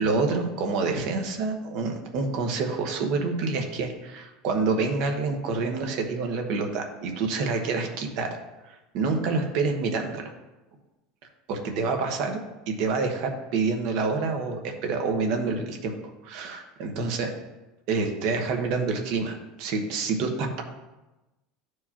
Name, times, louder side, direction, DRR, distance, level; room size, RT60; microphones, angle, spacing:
voice 1, 0.0-8.3 8.7-10.3 11.5-12.4 12.7-16.0 16.2-17.3 17.9-20.6, right 4 dB, 50° right, 4 dB, 1.2 m, -27 dB
13.0 x 4.7 x 2.9 m, 1.0 s
cardioid pair, 175°, 0 cm